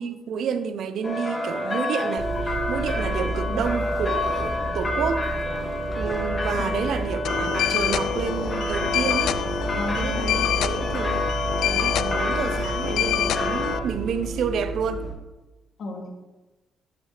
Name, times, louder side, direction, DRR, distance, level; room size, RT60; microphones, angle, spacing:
voice 1, 0.0-5.3 6.0-9.4 10.0-11.3 11.6-15.1, right 7 dB, 70° right, 0.6 m, -29 dB
sound 1, 1.0-13.8, left 2 dB, 20° left, 1.6 m, -29 dB
Bus, 2.2-15.1, right 2 dB, 50° right, 3.5 m, -32 dB
sound 2, 7.2-13.8, left 11 dB, 80° left, 0.3 m, -27 dB
voice 2, 9.7-10.4 15.8-16.1, left 2 dB, 60° left, 2.3 m, -33 dB
13.5 x 6.1 x 3.2 m
cardioid pair, 90°, 0 cm